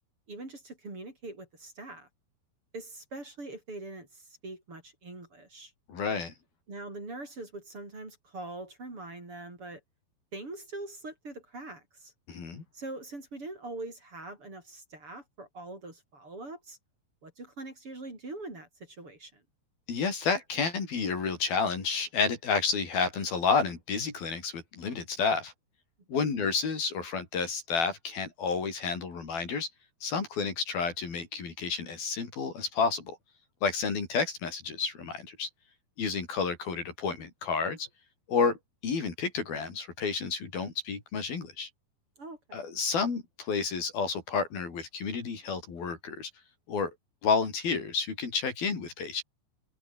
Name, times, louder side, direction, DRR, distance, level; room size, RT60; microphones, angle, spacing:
voice 1, 0.3-2.1 2.7-5.7 6.7-9.8 10.3-12.1 12.7-16.8 17.2-19.4 26.1-26.3 42.2-42.6, right 2 dB, 30° right, 6.8 m, -43 dB
voice 2, 5.9-6.3 12.3-12.6 19.9-25.5 26.1-29.7 30.0-33.2 33.6-35.5 36.0-37.9 38.3-38.6 38.8-41.7 42.5-46.3 46.7-46.9 47.2-49.2, left 5 dB, 60° left, 6.5 m, -30 dB
omnidirectional pair, 4.9 m